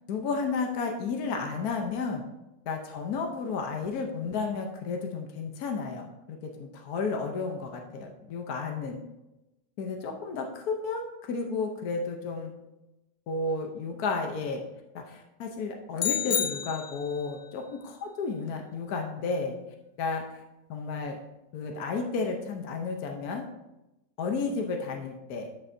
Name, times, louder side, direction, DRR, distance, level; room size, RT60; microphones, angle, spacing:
voice 1, 0.1-2.2 2.7-9.0 9.8-12.5 13.3-14.6 14.9-19.6 20.0-20.4 20.7-21.2 21.5-23.4 24.2-25.5, left 4 dB, 60° left, 3 dB, 1.1 m, -32 dB
sound 1, 16.0-17.3, left 9 dB, 85° left, 0.6 m, -30 dB
11.5 x 6.6 x 2.7 m, 0.97 s
omnidirectional pair, 2.1 m